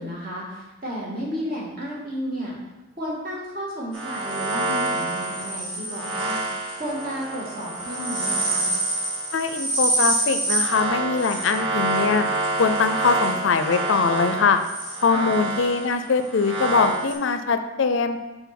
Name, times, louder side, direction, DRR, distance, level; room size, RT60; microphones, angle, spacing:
voice 1, 0.0-2.6 3.0-6.4 6.8-8.7 15.1-15.3, equal, 45° right, -5 dB, 1.9 m, -32 dB
sound 1, 3.9-17.1, right 2 dB, 65° right, 2.2 m, -26 dB
voice 2, 9.3-12.2 12.6-14.6 15.0-18.2, left 5 dB, 65° left, 9 dB, 0.4 m, -22 dB
6.0 x 3.9 x 5.8 m, 1.1 s
head